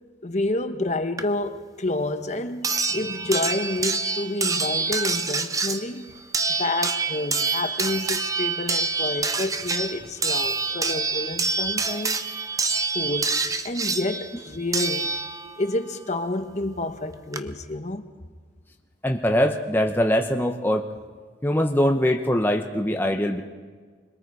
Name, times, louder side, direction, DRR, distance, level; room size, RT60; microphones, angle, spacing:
voice 1, 0.2-6.1 6.6-12.2 12.9-15.1 15.6-18.1, left 2 dB, 40° left, 1.0 m, -29 dB
sound 1, 1.2-1.3 2.6-15.6 16.9-17.0 17.3-17.4, right 4 dB, 20° right, 0.8 m, -26 dB
voice 2, 19.0-20.8 21.4-23.4, equal, 10° left, 0.8 m, -22 dB
26.0 x 21.5 x 4.8 m
head